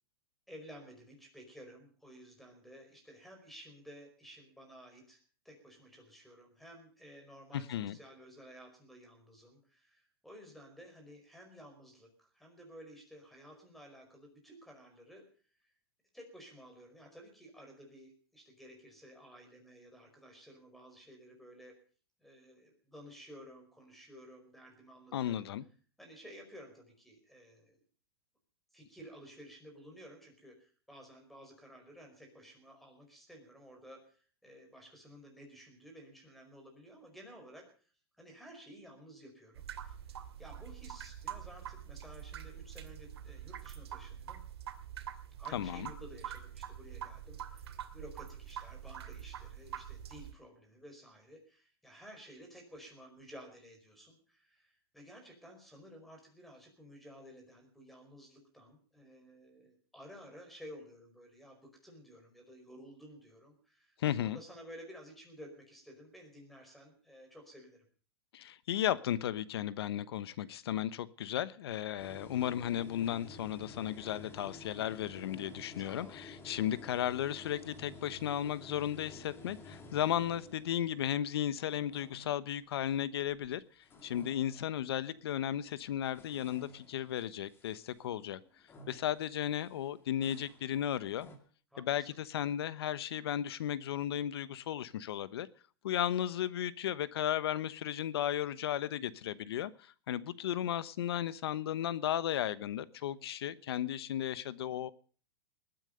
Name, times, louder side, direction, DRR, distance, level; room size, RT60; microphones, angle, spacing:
voice 1, 0.5-5.2 5.4-15.2 15.6-15.7 16.1-21.7 22.2-25.5 26.0-27.8 28.7-37.6 38.2-44.4 45.4-67.8 75.8-76.2 91.7-92.2, equal, ahead, 3 dB, 5.0 m, -54 dB
voice 2, 7.5-8.0 25.1-25.6 45.5-45.9 64.0-64.4 68.3-83.6 84.0-88.4 88.9-91.3 91.8-95.5 95.8-99.7 100.1-104.9, left 11 dB, 75° left, 17 dB, 1.1 m, -35 dB
sound 1, 39.6-50.3, right 9 dB, 80° right, 2.5 m, -45 dB
sound 2, 72.0-83.5 83.8-85.2 85.8-91.4, left 2 dB, 15° left, 2.5 m, -53 dB
20.0 x 9.0 x 6.7 m, 0.43 s
hypercardioid pair, 145°, 13 cm